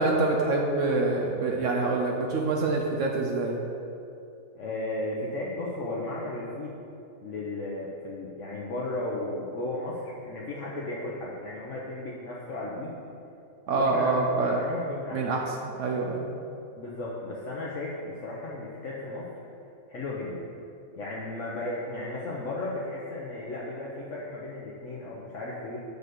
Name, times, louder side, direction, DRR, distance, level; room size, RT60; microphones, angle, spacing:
voice 1, 0.0-3.6 13.7-14.6 15.1-16.3, right 3 dB, 65° right, 0 dB, 0.9 m, -26 dB
voice 2, 4.5-6.7 7.2-12.9 13.7-15.2 16.7-19.3 19.9-20.4 21.0-25.8, left 2 dB, 60° left, -5 dB, 1.1 m, -35 dB
6.7 x 4.0 x 6.4 m, 2.7 s
omnidirectional pair, 1.5 m